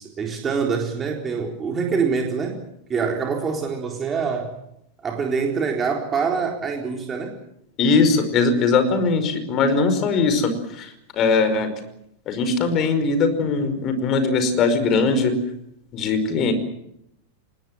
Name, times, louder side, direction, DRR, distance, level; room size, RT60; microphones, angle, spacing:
voice 1, 0.0-2.6 2.9-4.5 5.0-7.4, right 5 dB, 20° right, 2 dB, 4.1 m, -25 dB
voice 2, 7.8-10.5 10.8-11.7 12.3-15.3 15.9-16.5, left 4 dB, 35° left, 10 dB, 5.2 m, -20 dB
25.5 x 21.5 x 7.7 m, 0.77 s
figure-of-eight pair, 90°, 0 cm